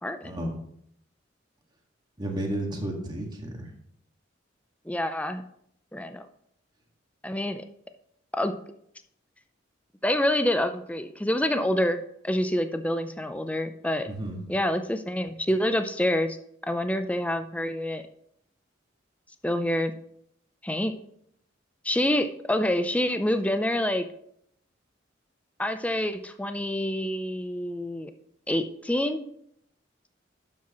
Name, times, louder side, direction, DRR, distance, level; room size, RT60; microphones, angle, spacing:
voice 1, 0.0-0.3 4.9-5.4 5.9-6.3 7.2-7.6 8.3-8.5 10.0-14.1 14.5-16.4 16.7-18.0 19.4-19.9 20.6-21.0 21.8-24.1 25.6-28.1 28.5-29.2, left 1 dB, 5° left, 9 dB, 0.6 m, -27 dB
voice 2, 2.2-3.7 14.1-14.4, right 1 dB, 20° right, 1 dB, 1.8 m, -32 dB
11.5 x 7.5 x 3.0 m, 0.70 s
head